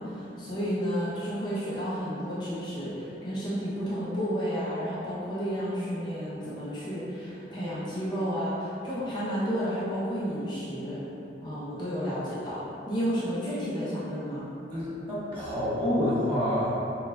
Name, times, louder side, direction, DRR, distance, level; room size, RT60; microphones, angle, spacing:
voice 1, 0.0-11.0 11.4-12.6 12.9-14.5, equal, 25° left, -10 dB, 0.6 m, -31 dB
voice 2, 14.7-16.8, left 1 dB, 30° right, -12 dB, 1.2 m, -27 dB
6.2 x 2.3 x 2.2 m, 2.8 s
head